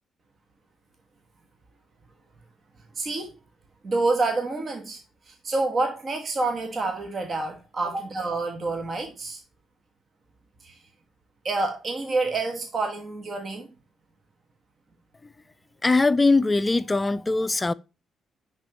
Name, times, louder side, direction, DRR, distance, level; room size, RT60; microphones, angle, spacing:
voice 1, 2.9-3.3 3.8-5.0 5.3-9.4 10.6-10.8 11.4-13.7, right 3 dB, 45° right, 1.3 m, -28 dB
voice 2, 15.8-17.7, left 3 dB, 25° left, 0.4 m, -21 dB
10.0 x 3.9 x 3.0 m
hypercardioid pair, 45°, 0 cm